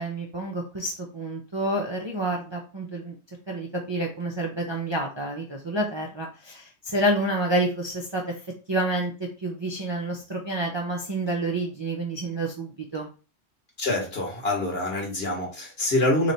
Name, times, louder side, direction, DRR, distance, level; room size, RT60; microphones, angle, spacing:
voice 1, 0.0-3.2 3.5-8.3 8.7-13.1, right 1 dB, 35° right, -1 dB, 0.5 m, -29 dB
voice 2, 13.8-16.3, left 1 dB, 55° left, 0 dB, 1.5 m, -25 dB
3.2 x 3.1 x 4.0 m, 0.34 s
omnidirectional pair, 1.2 m